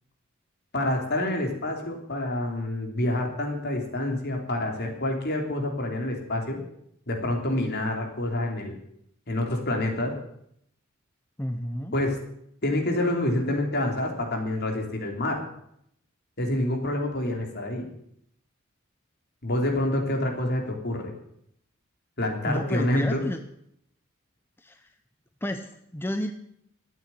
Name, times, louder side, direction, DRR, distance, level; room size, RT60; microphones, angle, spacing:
voice 1, 0.7-6.6 7.1-8.8 9.3-10.1 11.9-12.2 12.6-15.4 16.4-17.9 19.4-21.1 22.2-23.2, left 1 dB, 55° left, 2 dB, 3.4 m, -27 dB
voice 2, 11.4-12.0 22.5-23.4 24.6-24.9 25.4-26.3, equal, 10° left, 7 dB, 0.8 m, -31 dB
13.0 x 9.0 x 9.8 m, 0.72 s
head